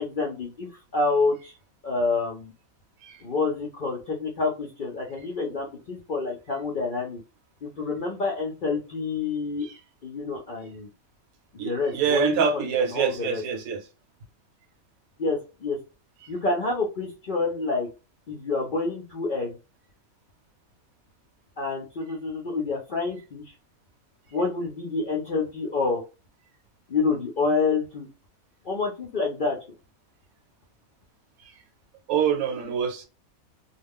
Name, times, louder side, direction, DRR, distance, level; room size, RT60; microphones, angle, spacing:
voice 1, 0.0-1.5 1.8-2.5 3.2-7.2 7.6-9.7 10.0-10.9 11.6-12.6 12.9-13.4 15.2-15.8 16.3-17.9 18.3-19.5 21.6-23.4 24.3-26.0 26.9-28.1 28.7-29.6, left 3 dB, 60° left, 0.5 m, -28 dB
voice 2, 11.6-13.9 16.2-16.3 31.4-31.5 32.1-33.1, right 7 dB, 75° right, 1.1 m, -26 dB
2.3 x 2.2 x 3.4 m
omnidirectional pair, 1.5 m